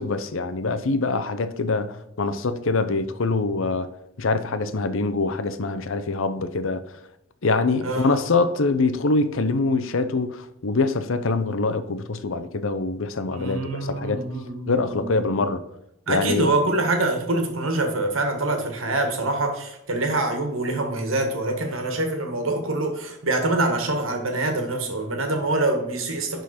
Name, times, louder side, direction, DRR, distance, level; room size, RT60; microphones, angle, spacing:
voice 1, 0.0-3.9 4.2-6.8 7.4-14.3 14.7-15.6 16.1-16.5, left 3 dB, 65° left, 0.7 m, -24 dB
voice 2, 7.8-8.2 13.3-15.2 16.1-26.4, right 2 dB, 70° right, 1.7 m, -25 dB
11.5 x 3.9 x 4.3 m
head